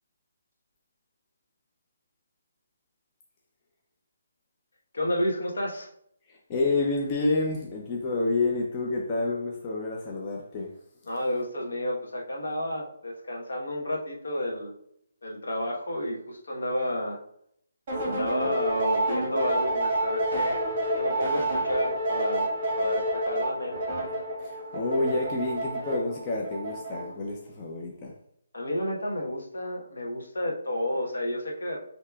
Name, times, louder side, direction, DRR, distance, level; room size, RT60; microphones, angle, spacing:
voice 1, 4.9-5.9 11.1-14.7 15.2-17.2 18.0-20.6 20.9-23.8 28.5-31.8, left 1 dB, 80° left, -1 dB, 1.1 m, -31 dB
voice 2, 6.3-10.8 18.0-18.2 24.4-28.1, left 2 dB, 20° left, -2 dB, 0.4 m, -29 dB
sound 1, 17.9-27.3, right 1 dB, 25° right, 1.3 m, -29 dB
6.7 x 2.8 x 2.3 m, 0.72 s
hypercardioid pair, 170°, 0 cm